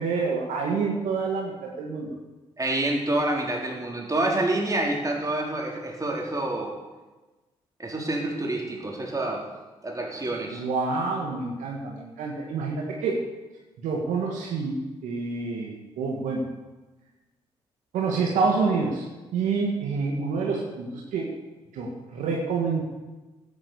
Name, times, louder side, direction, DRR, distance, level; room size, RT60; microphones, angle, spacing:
voice 1, 0.0-2.2 10.5-13.2 13.8-16.5 17.9-19.0 19.3-21.3 21.7-22.8, right 4 dB, 75° right, -1 dB, 2.0 m, -27 dB
voice 2, 2.6-6.8 7.8-9.5 9.8-10.6, right 2 dB, 25° right, -1 dB, 4.1 m, -27 dB
12.0 x 9.4 x 6.9 m, 1.2 s
hypercardioid pair, 45°, 13 cm